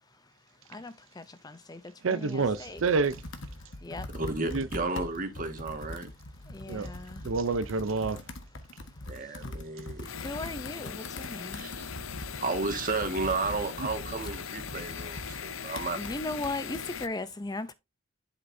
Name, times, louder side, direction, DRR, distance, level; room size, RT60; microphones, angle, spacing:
voice 1, 0.7-1.8 2.1-2.8 3.8-4.1 6.5-7.2 10.2-11.6 16.0-17.7, left 2 dB, 20° left, 0.5 m, -37 dB
voice 2, 2.0-3.2 4.5-4.7 6.7-6.9 7.2-8.3 9.8-9.9 13.8-13.9, right 4 dB, 75° right, 0.6 m, -28 dB
Computer keyboard, 2.3-16.9, left 1 dB, 65° left, 1.3 m, -43 dB
voice 3, 4.1-6.1 9.1-10.1 11.5-11.8 12.4-16.0, right 3 dB, 40° right, 1.8 m, -33 dB
sound 1, 10.1-17.1, left 7 dB, 85° left, 0.7 m, -40 dB
11.0 x 5.9 x 2.7 m
head